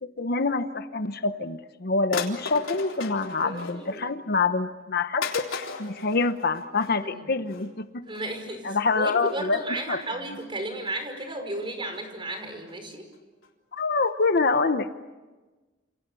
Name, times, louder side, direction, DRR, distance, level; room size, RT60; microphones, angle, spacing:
voice 1, 0.0-7.9 8.6-9.6 9.9-10.0 13.7-14.9, left 4 dB, 55° left, 10 dB, 1.0 m, -26 dB
sound 1, 1.3-1.4 2.1-4.1 4.5-4.6 5.2-7.0 7.4-7.7 8.1-8.3 8.8-8.9 9.2-9.3 10.0-10.5 10.9-11.2 11.6-12.0 12.4-12.5 12.7-12.8 13.1-13.2 13.4-13.5 13.8-13.9 14.1-14.2, left 5 dB, 90° left, 3.7 m, -37 dB
voice 2, 3.4-4.2 7.0-7.3 8.0-13.1, right 1 dB, 25° right, 6 dB, 5.3 m, -34 dB
29.0 x 28.5 x 7.0 m, 1.2 s
head